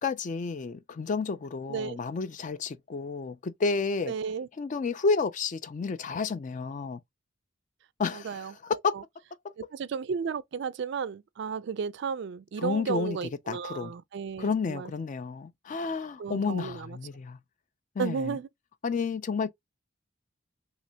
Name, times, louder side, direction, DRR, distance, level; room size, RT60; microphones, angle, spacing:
voice 1, 0.0-4.1 4.6-7.0 8.0-8.9 12.6-13.2 13.5-13.9 14.4-17.4 18.0-18.4 18.8-19.5, left 4 dB, 40° left, 0.3 m, -31 dB
voice 2, 4.1-4.5 8.1-8.5 8.9-9.0 9.6-14.9 16.2-17.0 18.0-18.5, right 6 dB, 60° right, 0.3 m, -33 dB
3.2 x 2.9 x 2.7 m
head